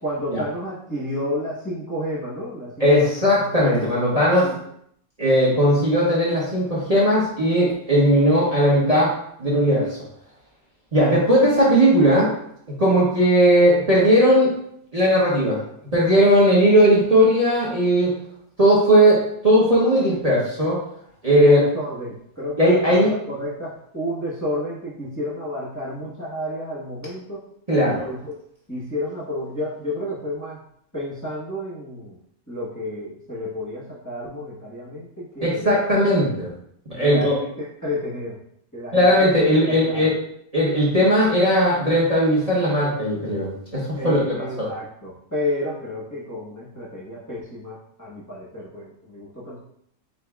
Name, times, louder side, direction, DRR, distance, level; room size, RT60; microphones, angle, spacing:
voice 1, 0.0-3.5 4.4-4.6 21.3-27.5 27.9-28.2 28.7-30.6 30.9-32.2 32.5-35.7 36.9-38.4 38.7-40.1 43.9-49.6, left 1 dB, 15° left, -8 dB, 1.0 m, -31 dB
voice 2, 2.8-4.5 5.2-9.9 10.9-12.3 12.8-14.5 14.9-15.6 15.9-18.1 18.6-20.8 21.2-21.6 22.6-23.1 27.7-28.1 35.4-36.5 36.9-37.3 38.9-40.1 40.5-44.2 44.6-44.7, equal, 30° right, -6 dB, 1.0 m, -17 dB
7.4 x 2.7 x 2.3 m, 0.71 s
omnidirectional pair, 1.5 m